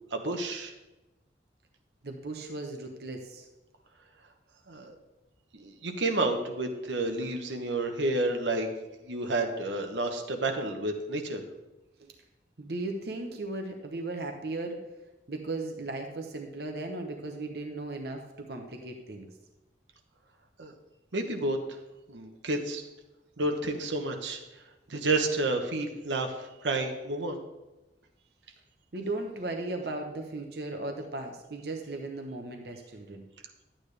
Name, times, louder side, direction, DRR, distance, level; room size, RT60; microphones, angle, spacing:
voice 1, 0.1-0.7 4.7-5.0 5.5-8.7 9.0-11.4 20.6-20.7 21.1-21.6 22.1-22.8 23.4-24.4 24.9-27.4, right 2 dB, 85° right, 4 dB, 1.1 m, -30 dB
voice 2, 2.0-3.5 12.0-12.1 12.6-14.9 15.3-19.3 28.9-33.3, right 2 dB, 60° right, 3 dB, 0.9 m, -36 dB
11.5 x 8.8 x 3.3 m, 1.0 s
head